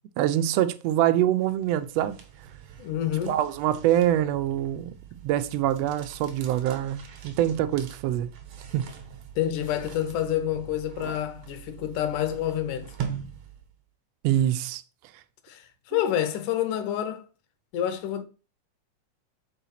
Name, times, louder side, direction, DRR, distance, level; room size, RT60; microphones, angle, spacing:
voice 1, 0.2-2.2 3.3-4.9 5.2-8.3 8.7-8.9 14.2-14.8, right 12 dB, 85° right, 1.4 m, -24 dB
sound 1, 1.4-13.8, right 8 dB, 65° right, 2.1 m, -42 dB
voice 2, 2.8-3.4 9.4-13.0 15.4-17.3 17.7-18.2, left 11 dB, 75° left, 2.3 m, -28 dB
5.6 x 4.1 x 5.7 m
omnidirectional pair, 3.7 m